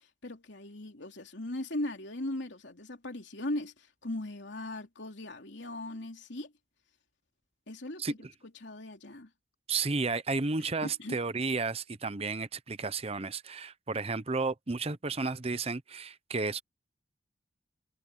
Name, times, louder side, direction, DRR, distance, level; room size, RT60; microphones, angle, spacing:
voice 1, 0.0-6.5 7.7-8.2 8.6-9.3 10.8-11.2, left 1 dB, 70° left, 3.3 m, -38 dB
voice 2, 8.0-8.3 9.7-16.6, right 4 dB, 35° right, 0.8 m, -32 dB
head